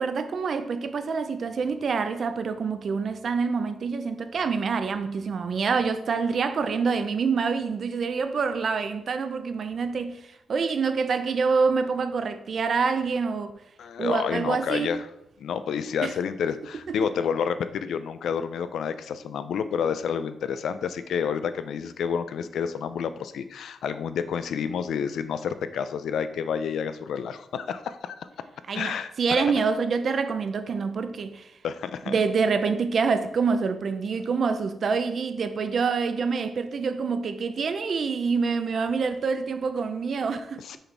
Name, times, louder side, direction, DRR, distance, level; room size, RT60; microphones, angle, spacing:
voice 1, 0.0-10.2 10.5-13.5 14.0-15.0 16.0-16.1 16.9-17.0 28.7-31.5 32.1-40.8, right 5 dB, 50° right, 0.5 m, -26 dB
voice 2, 13.8-15.1 15.4-28.3 28.7-29.5 31.6-32.2 40.6-40.8, left 7 dB, 80° left, 0.4 m, -29 dB
6.4 x 4.2 x 4.6 m
wide cardioid pair, 150°, 0 cm